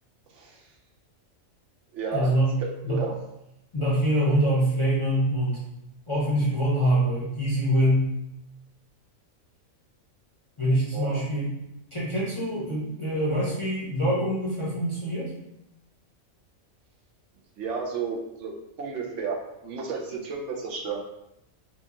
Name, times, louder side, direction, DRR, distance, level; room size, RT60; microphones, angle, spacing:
voice 1, 0.3-0.7 1.9-2.3 2.6-3.1 10.9-11.2 17.6-21.0, right 5 dB, 70° right, 0 dB, 0.9 m, -32 dB
voice 2, 2.1-2.5 2.8-3.0 3.7-5.6 6.1-8.1 10.6-11.5 11.9-15.3, right 1 dB, 30° left, -7 dB, 0.6 m, -24 dB
4.3 x 2.3 x 2.8 m, 0.84 s
omnidirectional pair, 1.4 m